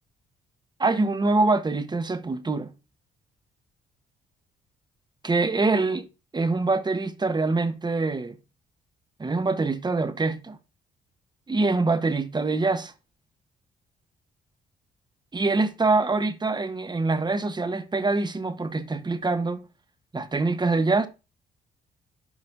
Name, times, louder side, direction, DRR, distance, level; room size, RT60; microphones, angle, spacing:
voice 1, 0.8-2.7 5.2-6.1 6.3-8.4 9.2-10.6 11.5-12.9 15.3-19.6 20.1-21.1, right 3 dB, 25° right, 1.2 m, -24 dB
12.0 x 5.1 x 2.7 m
supercardioid pair, 65°, 17 cm